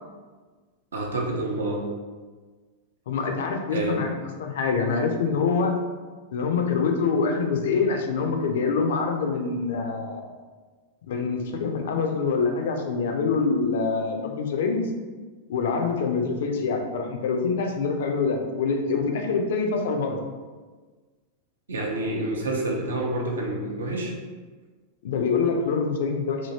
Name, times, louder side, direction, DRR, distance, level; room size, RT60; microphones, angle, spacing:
voice 1, 0.9-1.8 3.7-4.0 21.7-24.1, right 2 dB, 70° right, -1 dB, 0.6 m, -28 dB
voice 2, 3.1-4.1 4.4-5.8 6.3-10.3 11.1-14.9 15.5-20.2 25.0-26.5, left 4 dB, 60° left, 3 dB, 0.4 m, -25 dB
2.8 x 2.7 x 2.7 m, 1.4 s
figure-of-eight pair, 90°, 0 cm